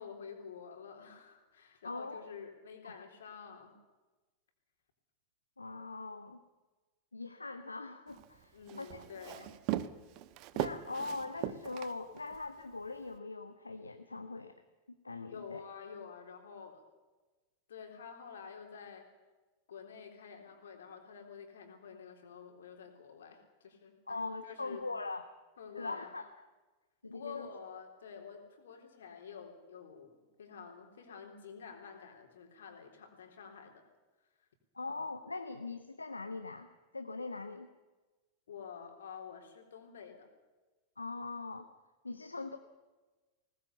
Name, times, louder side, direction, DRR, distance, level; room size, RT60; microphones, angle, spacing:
voice 1, 0.0-3.8 8.5-9.5 15.3-16.8 17.7-19.0 19.7-24.9 25.6-26.1 27.1-33.8 38.5-40.3, left 6 dB, 65° left, 4 dB, 3.7 m, -49 dB
voice 2, 1.8-2.3 2.8-3.0 5.6-6.4 7.1-9.4 10.5-14.5 14.9-15.6 24.1-25.3 25.7-26.3 27.0-27.5 34.7-36.7 36.9-37.7 41.0-41.7 42.0-42.6, left 3 dB, 80° left, 8 dB, 1.0 m, -41 dB
Walk footsteps, 8.1-12.5, right 13 dB, 40° right, 1.0 m, -39 dB
20.5 x 18.5 x 8.2 m, 1.2 s
figure-of-eight pair, 90°, 0 cm